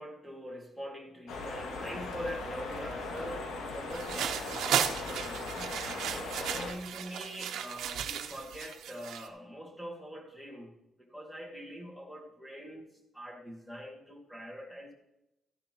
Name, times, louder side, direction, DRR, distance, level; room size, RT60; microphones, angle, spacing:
voice 1, 0.0-5.8 6.1-12.9 13.1-14.9, equal, 5° left, 1 dB, 2.3 m, -43 dB
sound 1, 1.3-6.7, left 3 dB, 80° left, 2.1 m, -39 dB
sound 2, 3.9-9.3, right 9 dB, 85° right, 1.0 m, -35 dB
13.5 x 10.5 x 3.0 m, 0.88 s
cardioid pair, 160°, 0 cm